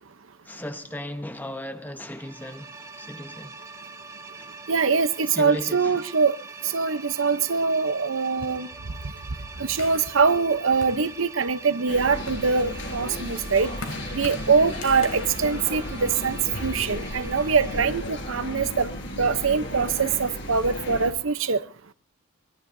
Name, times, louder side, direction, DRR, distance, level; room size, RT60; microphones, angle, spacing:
voice 1, 0.4-3.7 4.4-4.6 5.3-6.0 11.9-12.1, left 1 dB, 10° left, 0.9 m, -37 dB
sound 1, 2.1-17.8, right 4 dB, 15° right, 1.1 m, -43 dB
voice 2, 4.7-6.4 6.7-8.7 9.6-13.7 14.1-18.9 19.2-21.6, right 5 dB, 65° right, 0.8 m, -23 dB
sound 2, 9.8-11.6 12.1-16.7, left 3 dB, 85° left, 3.1 m, -41 dB
sound 3, 11.9-21.1, left 1 dB, 55° left, 5.1 m, -34 dB
23.5 x 21.5 x 2.7 m
head